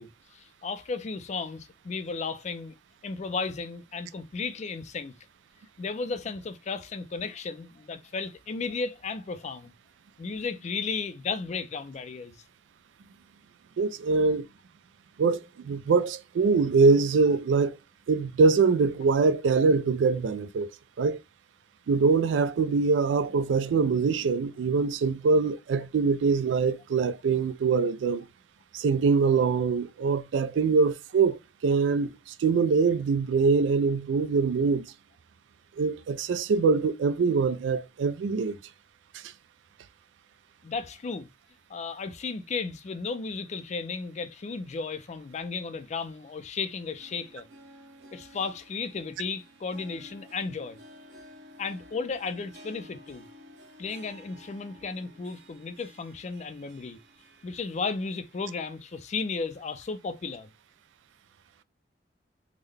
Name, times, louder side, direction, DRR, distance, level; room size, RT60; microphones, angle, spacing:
voice 1, 0.0-2.7 3.0-5.1 5.8-9.7 10.2-12.4 40.6-41.3 41.7-47.5 48.1-50.8 51.6-53.3 53.8-57.0 57.4-60.5, left 4 dB, 40° left, 0.4 m, -34 dB
voice 2, 13.8-14.5 15.2-17.8 18.1-20.7 21.0-21.2 21.9-28.3 28.7-34.9 35.8-38.6, right 4 dB, 85° right, 0.3 m, -24 dB
Harp, 46.9-58.9 59.2-59.3 60.2-60.3, left 1 dB, 65° right, 1.1 m, -53 dB
3.7 x 2.1 x 3.2 m
head